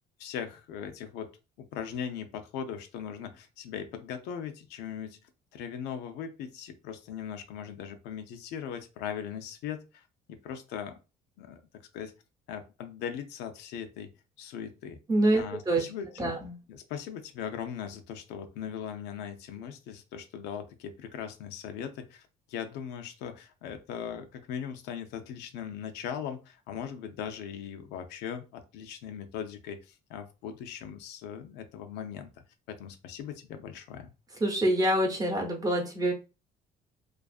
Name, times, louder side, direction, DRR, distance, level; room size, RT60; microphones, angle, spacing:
voice 1, 0.2-1.3 1.6-5.2 5.5-11.0 11.4-12.1 12.5-14.1 14.4-15.0 15.3-16.4 16.7-32.3 32.7-34.1, left 8 dB, 90° left, 7 dB, 0.5 m, -39 dB
voice 2, 15.1-15.8 16.2-16.6 34.4-36.1, right 1 dB, 20° right, 2 dB, 0.8 m, -26 dB
2.5 x 2.4 x 2.3 m, 0.30 s
cardioid pair, 110°, 17 cm